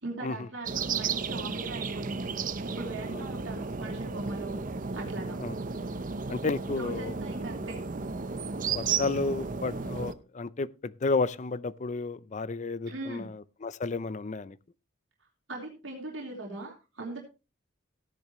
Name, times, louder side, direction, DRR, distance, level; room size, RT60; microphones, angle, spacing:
voice 1, 0.0-2.4 2.6-5.4 6.8-7.8 12.9-13.3 15.5-17.2, right 2 dB, 75° right, 3.3 m, -40 dB
sound 1, 0.7-10.1, right 5 dB, 45° right, 0.8 m, -34 dB
voice 2, 6.3-7.1 8.7-14.6, left 3 dB, 40° left, 0.5 m, -32 dB
15.0 x 10.5 x 3.1 m
head